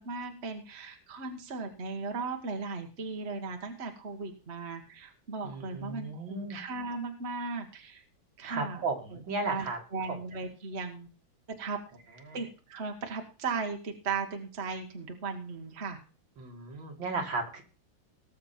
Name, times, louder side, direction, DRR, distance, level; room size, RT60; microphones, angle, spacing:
voice 1, 0.0-8.0 8.4-8.9 9.1-9.2 9.5-11.1 11.5-11.8 12.3-16.0, right 4 dB, 35° right, 4 dB, 1.6 m, -37 dB
voice 2, 5.4-6.6 8.4-9.8 10.1-10.2 12.3-12.4 16.4-17.6, right 3 dB, 75° right, 3 dB, 2.8 m, -35 dB
19.0 x 6.7 x 4.4 m, 0.35 s
omnidirectional pair, 2.1 m